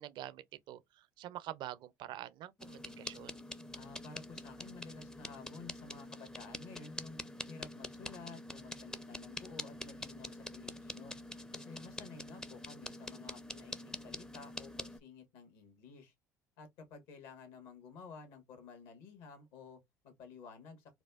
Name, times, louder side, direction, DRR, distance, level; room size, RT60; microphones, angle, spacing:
voice 1, 0.0-3.4, right 13 dB, 55° right, 0.5 m, -46 dB
sound 1, 2.6-15.0, left 1 dB, 5° left, 0.4 m, -46 dB
voice 2, 3.7-7.2 7.5-11.2 11.5-16.1 16.6-21.0, left 5 dB, 65° left, 1.2 m, -52 dB
4.2 x 2.3 x 2.3 m
hypercardioid pair, 60°, 10 cm